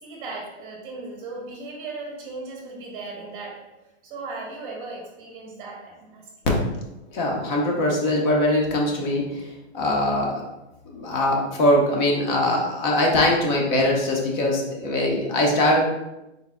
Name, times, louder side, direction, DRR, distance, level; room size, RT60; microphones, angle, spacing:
voice 1, 0.0-6.3, right 3 dB, 25° right, -2 dB, 0.8 m, -37 dB
voice 2, 7.1-9.5 9.7-10.4 10.9-15.8, left 1 dB, 40° left, -1 dB, 1.1 m, -22 dB
4.1 x 3.9 x 2.3 m, 0.96 s
hypercardioid pair, 135°, 34 cm